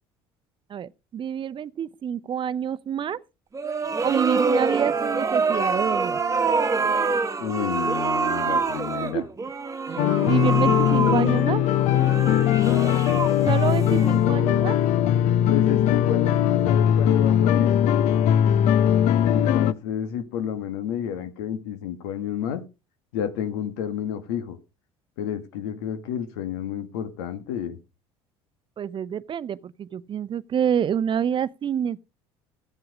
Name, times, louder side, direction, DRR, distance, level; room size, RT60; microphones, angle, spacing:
voice 1, 0.7-3.2 4.0-6.2 9.0-9.3 9.9-11.7 13.4-14.8 28.8-32.0, right 8 dB, 40° right, 0.7 m, -27 dB
sound 1, 3.5-14.5, right 4 dB, 25° right, 1.3 m, -26 dB
voice 2, 7.4-9.2 12.3-13.3 15.5-17.7 19.2-22.6 23.1-24.6 25.2-27.8, left 9 dB, 85° left, 1.8 m, -30 dB
sound 2, 10.0-19.7, left 10 dB, 65° left, 0.8 m, -20 dB
14.0 x 7.8 x 5.0 m
supercardioid pair, 80°, 13 cm